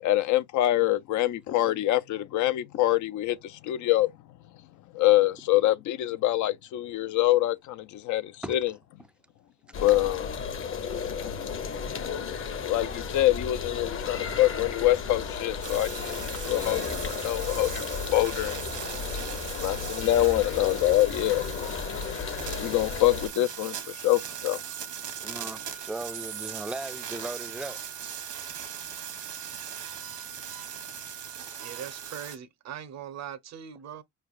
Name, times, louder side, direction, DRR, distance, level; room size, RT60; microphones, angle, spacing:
voice 1, 0.0-4.1 4.9-8.7 9.8-10.3 12.6-17.8 18.1-18.6 19.6-21.4 22.6-24.6, left 15 dB, 75° left, 0.5 m, -25 dB
sound 1, 9.7-23.3, left 6 dB, 45° left, 0.8 m, -34 dB
sound 2, 15.6-32.4, right 8 dB, 80° right, 1.1 m, -39 dB
voice 2, 25.2-27.8, right 2 dB, 5° right, 0.3 m, -38 dB
voice 3, 31.5-34.0, right 9 dB, 60° right, 0.7 m, -40 dB
4.6 x 3.3 x 2.4 m
cardioid pair, 90°, 30 cm